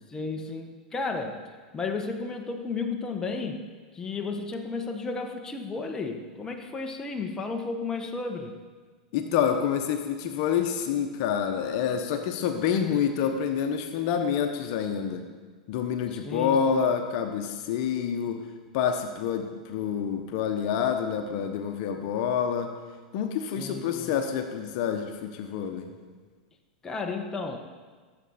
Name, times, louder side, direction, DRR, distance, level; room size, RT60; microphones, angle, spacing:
voice 1, 0.1-3.6 3.9-8.6 16.2-16.8 23.6-24.1 26.8-27.6, left 4 dB, 15° left, 3 dB, 1.2 m, -33 dB
voice 2, 9.1-15.2 15.7-18.5 18.7-22.8 23.1-25.9, left 7 dB, 55° left, 6 dB, 1.1 m, -27 dB
15.5 x 7.8 x 4.3 m, 1.5 s
hypercardioid pair, 105°, 4 cm